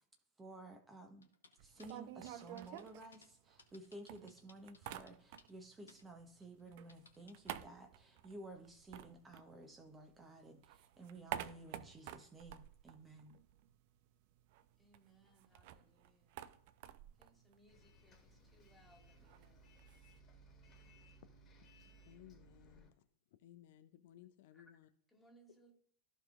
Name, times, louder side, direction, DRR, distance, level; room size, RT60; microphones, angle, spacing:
voice 1, 0.4-1.3 1.6-13.4, right 2 dB, 15° right, 4 dB, 1.0 m, -54 dB
sound 1, 1.2-1.9 2.3-3.3 3.6-5.6 5.9-6.0 6.4-7.5, left 4 dB, 75° left, 1.1 m, -63 dB
sound 2, 1.6-3.8 4.1-5.7 6.0-10.1 10.5-13.8 14.0-14.1 14.4-20.2, right 12 dB, 50° right, 0.5 m, -50 dB
voice 2, 14.8-16.4 17.2-19.8 24.5-24.7 25.1-25.7, right 1 dB, 5° left, 1 dB, 2.2 m, -68 dB
Bus, 17.7-22.9, right 2 dB, 25° left, 1.8 m, -63 dB
voice 3, 22.1-23.1 23.4-24.9, left 12 dB, 55° left, 11 dB, 0.5 m, -60 dB
14.0 x 5.1 x 2.5 m, 0.66 s
figure-of-eight pair, 90°, 0 cm